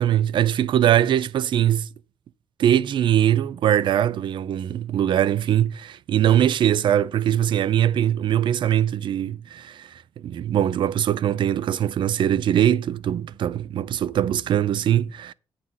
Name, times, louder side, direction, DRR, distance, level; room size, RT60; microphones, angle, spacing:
voice 1, 0.0-1.9 2.6-15.3, right 10 dB, 65° right, 0.4 m, -21 dB
9.4 x 4.2 x 7.3 m
wide cardioid pair, 175°, 9 cm